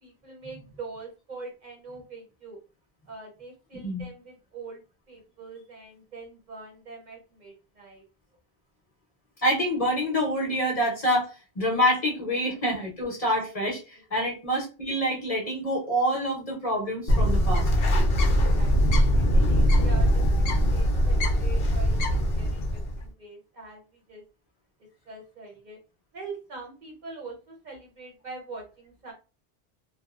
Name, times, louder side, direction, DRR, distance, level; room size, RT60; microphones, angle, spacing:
voice 1, 0.0-2.6 3.1-4.8 5.1-8.0 14.1-14.3 18.3-24.2 25.1-25.8 26.1-29.1, right 4 dB, 50° right, 0 dB, 0.7 m, -43 dB
voice 2, 9.4-17.7, equal, 40° left, -3 dB, 0.8 m, -27 dB
Bird, 17.1-23.0, equal, 70° left, 0.7 m, -22 dB
2.8 x 2.0 x 2.3 m, 0.32 s
omnidirectional pair, 1.1 m